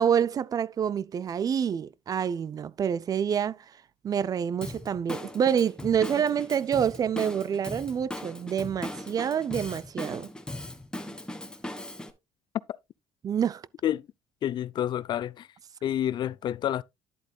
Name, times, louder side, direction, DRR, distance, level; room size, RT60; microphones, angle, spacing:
voice 1, 0.0-3.6 4.0-10.3 13.2-13.6, right 8 dB, 40° right, 0.4 m, -27 dB
Drum kit / Drum, 4.6-12.1, left 1 dB, 10° left, 1.6 m, -39 dB
voice 2, 14.4-15.5 15.8-16.8, left 11 dB, 55° left, 0.4 m, -28 dB
11.0 x 8.0 x 2.3 m
supercardioid pair, 85°, 9 cm